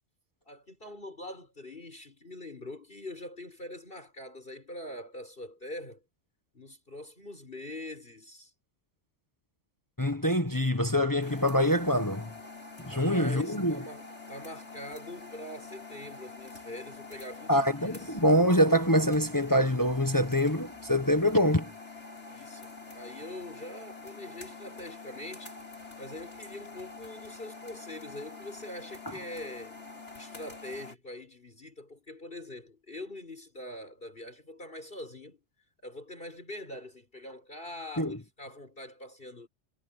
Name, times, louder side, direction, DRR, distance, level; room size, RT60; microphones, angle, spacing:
voice 1, 0.5-6.0 6.5-8.5 12.9-18.2 22.3-25.5 26.0-29.8 30.1-35.4 35.8-39.5, left 1 dB, 45° left, 5.4 m, -43 dB
voice 2, 10.0-12.3 12.8-13.8 17.5-21.7 29.1-29.2 38.0-38.2, equal, 15° left, 1.4 m, -25 dB
sound 1, 11.2-31.0, left 3 dB, 65° left, 6.5 m, -46 dB
omnidirectional pair, 1.2 m